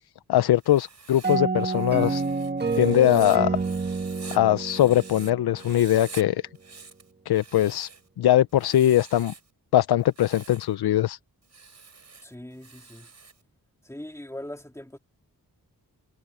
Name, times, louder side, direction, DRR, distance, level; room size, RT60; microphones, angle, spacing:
voice 1, 0.3-2.2 2.8-3.6 4.3-6.4 7.3-7.9 8.2-9.3 9.7-11.2, left 12 dB, 85° left, 0.5 m, -21 dB
Writing, 0.6-5.3 5.6-6.2 6.5-8.1 8.5-9.5 10.0-10.7 11.4-13.4, right 4 dB, 45° right, 6.1 m, -47 dB
sound 1, 1.2-5.9, right 4 dB, 25° right, 1.4 m, -28 dB
voice 2, 12.2-13.1 13.8-15.0, left 1 dB, 5° left, 2.9 m, -40 dB
wide cardioid pair, 160°, 37 cm